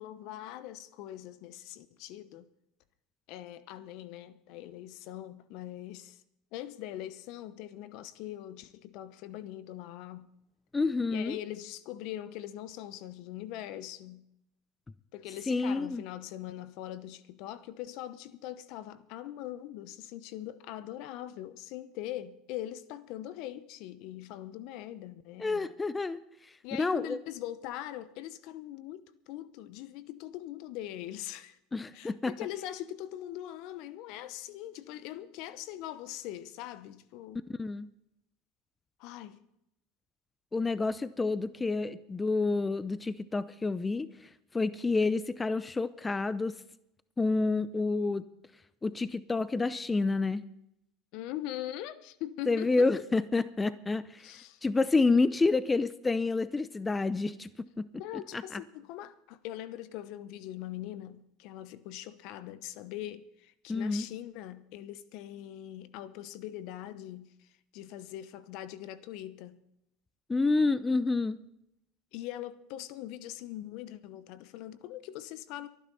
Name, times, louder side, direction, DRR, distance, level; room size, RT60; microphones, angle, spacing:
voice 1, 0.0-2.5 3.3-6.2 6.5-10.3 11.1-14.2 15.1-25.7 26.6-31.6 31.9-37.4 39.0-39.4 51.1-52.9 54.2-54.6 58.0-67.5 67.7-69.6 72.1-75.7, left 13 dB, 65° left, 0.9 m, -42 dB
voice 2, 10.7-11.4 15.5-16.0 25.4-26.2 26.8-27.2 31.7-32.3 37.6-37.9 40.5-44.1 44.5-46.6 47.2-48.2 48.8-50.4 52.5-54.3 54.6-57.5 57.8-57.9 58.5-58.6 63.7-64.1 70.3-71.4, left 3 dB, 15° left, 0.6 m, -28 dB
23.0 x 10.0 x 4.1 m
hypercardioid pair, 85°, 0 cm